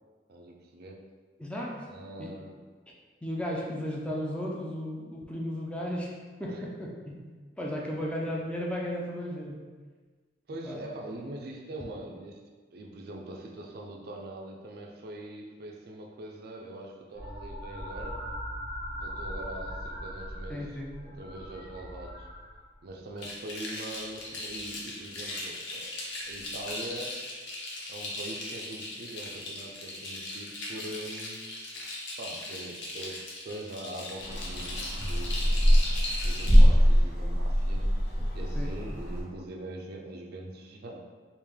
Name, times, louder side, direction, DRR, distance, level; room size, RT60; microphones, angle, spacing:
voice 1, 0.3-1.1 1.9-2.6 6.5-6.6 8.0-8.1 10.5-12.4 12.7-18.2 19.0-22.3 22.8-25.9 26.3-27.2 27.9-31.5 32.2-35.5 36.2-37.9 38.3-41.1, right 1 dB, 60° right, 1 dB, 0.4 m, -42 dB
voice 2, 1.4-2.3 3.2-6.1 6.4-7.3 7.6-9.6 10.5-10.8 20.5-20.9 38.5-38.7, equal, 5° left, -3 dB, 0.4 m, -35 dB
sound 1, 17.1-22.9 24.2-24.7 26.4-26.5, equal, 45° left, 0.9 m, -40 dB
sound 2, 23.2-36.6, left 2 dB, 90° left, 0.8 m, -39 dB
sound 3, 34.2-39.2, equal, 65° left, 1.1 m, -23 dB
3.3 x 2.5 x 3.5 m, 1.4 s
head